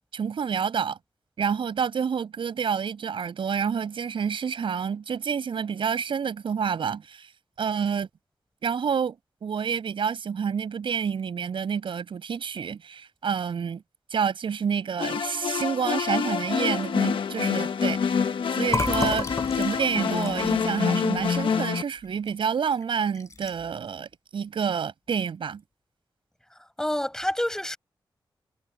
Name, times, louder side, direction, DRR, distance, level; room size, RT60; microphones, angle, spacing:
voice 1, 0.1-1.0 1.4-7.3 7.6-8.1 8.6-9.2 9.4-13.8 14.1-18.3 18.6-19.3 19.6-25.6, right 7 dB, 80° right, 6.7 m, -28 dB
sound 1, 15.0-21.8, left 6 dB, 75° left, 1.3 m, -26 dB
Fill (with liquid), 18.7-22.3 22.7-22.8 23.1-23.8, left 4 dB, 40° left, 2.8 m, -32 dB
voice 2, 26.8-27.8, left 1 dB, 5° left, 6.4 m, -27 dB
wide cardioid pair, 150°, 9 cm